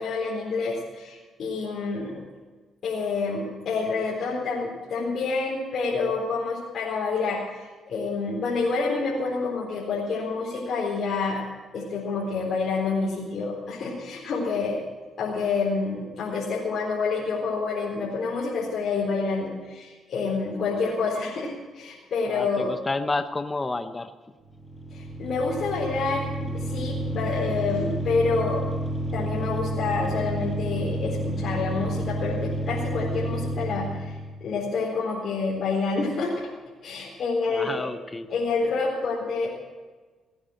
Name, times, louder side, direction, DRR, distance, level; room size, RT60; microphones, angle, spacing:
voice 1, 0.0-2.2 2.8-11.4 11.7-14.8 15.2-22.7 24.9-28.6 29.1-36.5 36.8-37.9 38.3-39.5, left 4 dB, 60° left, -5 dB, 4.2 m, -28 dB
voice 2, 22.3-24.1 37.5-38.3, left 3 dB, 20° left, 9 dB, 0.9 m, -30 dB
sound 1, 24.4-34.3, right 1 dB, 5° left, 7.0 m, -30 dB
18.5 x 9.8 x 7.8 m, 1.3 s
cardioid pair, 90°, 0 cm